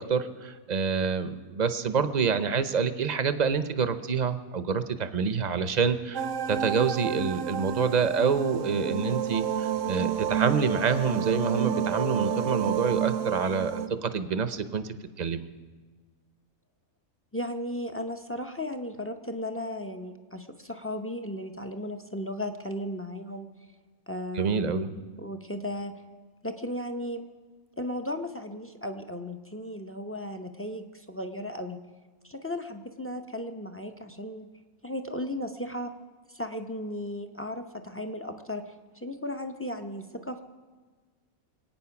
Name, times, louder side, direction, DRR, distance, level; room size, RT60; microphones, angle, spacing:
voice 1, 0.0-15.5 24.4-24.9, right 5 dB, 40° right, 11 dB, 0.6 m, -27 dB
sound 1, 6.1-13.9, right 8 dB, 65° right, 0.9 m, -30 dB
voice 2, 17.3-23.5 24.1-26.0 26.4-27.2 27.8-31.8 32.2-34.5 34.8-35.9 36.3-40.4, left 1 dB, 20° left, 7 dB, 0.4 m, -35 dB
24.5 x 9.1 x 5.9 m, 1.4 s
omnidirectional pair, 1.5 m